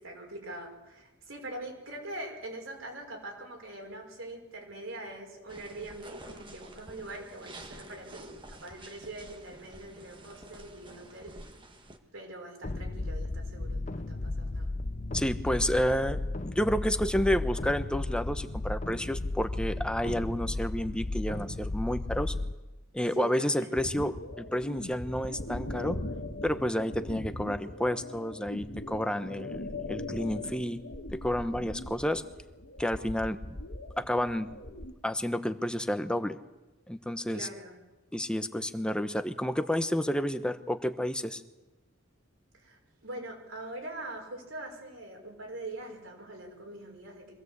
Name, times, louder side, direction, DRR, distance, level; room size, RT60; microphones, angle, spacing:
voice 1, 0.0-11.4 12.1-14.7 23.1-23.8 37.3-37.8 42.5-47.4, right 1 dB, 70° right, 1 dB, 5.9 m, -43 dB
sound 1, 5.5-12.0, right 1 dB, 25° right, 1.7 m, -49 dB
sound 2, 12.6-22.5, left 2 dB, 35° left, 0.8 m, -34 dB
voice 2, 15.1-22.3 22.9-26.0 26.4-29.6 29.9-30.8 31.1-32.2 32.8-33.6 34.0-34.5 35.0-36.4 36.9-37.5 38.1-41.4, equal, 5° left, 9 dB, 1.0 m, -30 dB
sound 3, 23.7-34.9, left 1 dB, 70° left, 1.8 m, -40 dB
24.0 x 16.5 x 8.2 m, 1.1 s
head